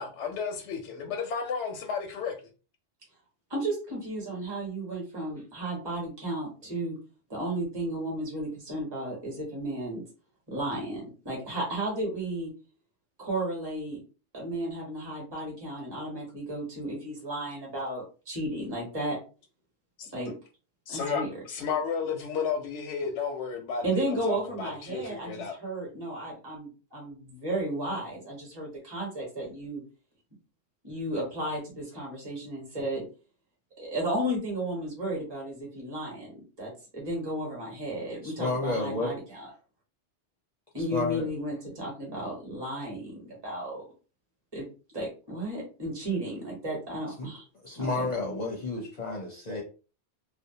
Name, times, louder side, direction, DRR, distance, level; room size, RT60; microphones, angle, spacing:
voice 1, 0.0-2.3 20.0-20.1 20.9-21.2 21.5-25.6, left 6 dB, 85° left, 0.9 m, -32 dB
voice 2, 3.5-7.0 7.3-10.0 10.5-12.5 13.2-14.0 14.3-19.2 20.1-20.3 20.9-21.3 23.8-29.8 30.8-33.0 33.8-39.4 40.7-43.8 44.5-44.6 44.9-47.4 47.8-48.1, right 1 dB, 25° right, 1.0 m, -33 dB
voice 3, 38.2-39.1 40.9-41.3 47.2-47.3 47.6-49.6, left 2 dB, 45° left, 0.6 m, -31 dB
2.6 x 2.1 x 2.7 m
omnidirectional pair, 1.2 m